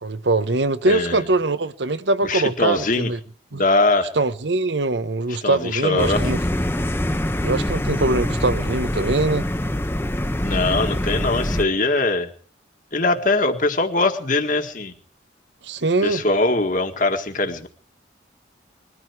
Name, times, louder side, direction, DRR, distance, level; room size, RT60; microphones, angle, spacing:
voice 1, 0.0-3.2 3.5-3.6 4.1-6.4 7.4-9.5 15.6-16.2, right 2 dB, 70° right, 1.0 m, -22 dB
voice 2, 0.9-1.2 2.2-3.1 3.5-4.1 5.4-6.2 10.4-12.3 12.9-14.9 16.0-17.7, left 2 dB, 45° left, 1.9 m, -21 dB
sound 1, 6.0-11.6, left 1 dB, 15° left, 0.8 m, -24 dB
21.5 x 14.0 x 4.7 m
head